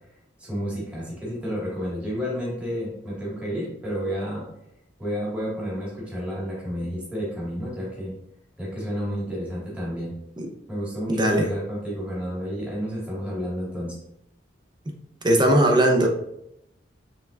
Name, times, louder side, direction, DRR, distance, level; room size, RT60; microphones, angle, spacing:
voice 1, 0.4-4.4 5.0-8.1 8.6-10.1 10.7-14.0, equal, 5° right, -7 dB, 1.6 m, -31 dB
voice 2, 11.1-11.5 15.2-16.1, right 1 dB, 25° right, 2 dB, 0.6 m, -19 dB
5.4 x 3.5 x 2.4 m, 0.79 s
head